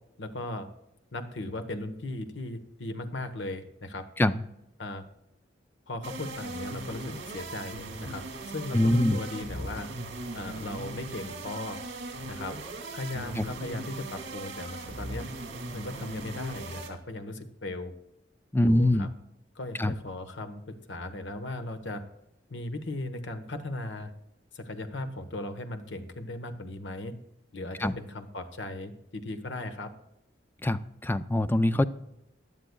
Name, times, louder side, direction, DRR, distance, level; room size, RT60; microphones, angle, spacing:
voice 1, 0.2-0.7 1.1-4.1 4.8-5.1 5.9-9.9 10.3-11.8 12.3-12.6 12.9-15.3 15.7-17.9 18.6-19.1 19.5-22.0 22.5-24.1 24.5-27.1 27.5-29.9, left 2 dB, 75° left, 8 dB, 1.2 m, -37 dB
sound 1, 6.0-16.9, right 2 dB, 70° right, 2.2 m, -39 dB
voice 2, 8.7-9.2 13.4-13.5 18.5-19.1 19.8-19.9 27.8-28.0 30.6-31.8, left 1 dB, 10° left, 12 dB, 0.4 m, -24 dB
16.0 x 11.0 x 2.3 m, 0.85 s
head